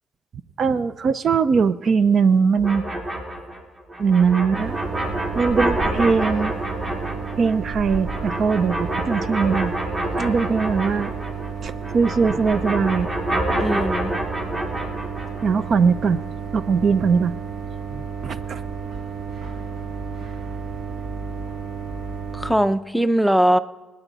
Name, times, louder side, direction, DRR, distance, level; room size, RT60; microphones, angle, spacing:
voice 1, 0.6-2.9 4.0-4.8 5.3-6.6 7.4-9.7 10.2-11.2 11.6-13.1 15.4-16.2 16.5-17.3 18.2-18.6, right 5 dB, 55° right, 14 dB, 0.5 m, -20 dB
sound 1, 2.6-11.5 11.8-15.4, right 1 dB, 35° right, 3.0 m, -28 dB
sound 2, 4.5-22.6, right 5 dB, 70° right, 1.6 m, -32 dB
voice 2, 13.6-14.1 17.9-18.0 22.3-23.6, right 1 dB, ahead, 13 dB, 0.6 m, -20 dB
27.5 x 9.2 x 4.0 m, 1.3 s
cardioid pair, 90°, 0 cm